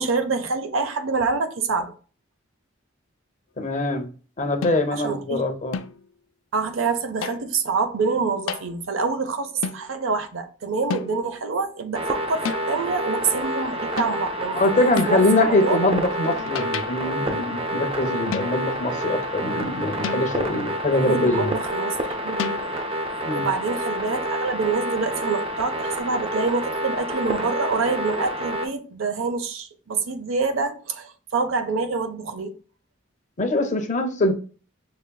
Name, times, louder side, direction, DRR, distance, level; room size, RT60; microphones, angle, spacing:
voice 1, 0.0-1.9 4.9-5.4 6.5-15.8 20.9-22.7 23.1-32.5, right 4 dB, 90° right, 0.6 m, -26 dB
voice 2, 3.6-4.1 4.4-5.8 14.5-21.6 23.2-23.5 33.4-34.3, left 2 dB, 40° left, 0.7 m, -23 dB
sound 1, 4.6-5.1 5.7-6.1 7.2-7.6 8.5-8.8 9.6-9.9 10.9-11.4 12.5-12.8 14.0-14.3 15.0-15.3 16.2-17.1 18.3-18.8 20.0-20.6 22.4-22.6, left 6 dB, 80° left, 0.4 m, -32 dB
sound 2, 11.9-28.7, equal, 30° right, 0.6 m, -28 dB
5.8 x 3.1 x 2.2 m
head